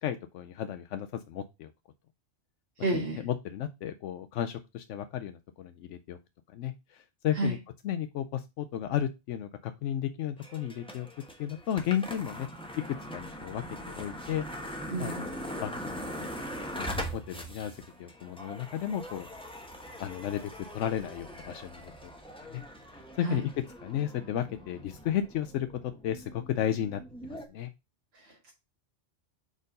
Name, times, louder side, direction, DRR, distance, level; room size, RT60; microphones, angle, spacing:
voice 1, 0.0-1.7 2.9-6.2 6.5-7.6 7.8-11.1 11.4-12.5 12.9-14.4 15.0-16.0 16.8-19.3 20.0-20.4 20.7-22.1 22.5-22.6 22.9-23.5 23.8-27.7, left 10 dB, 85° left, 9 dB, 0.9 m, -34 dB
voice 2, 2.8-3.2 7.3-7.6 14.9-15.3 23.2-23.4 28.1-28.5, right 2 dB, 60° right, -4 dB, 2.0 m, -31 dB
sound 1, 10.4-27.5, equal, 5° left, 1.0 m, -42 dB
4.8 x 4.4 x 5.2 m, 0.24 s
omnidirectional pair, 1.2 m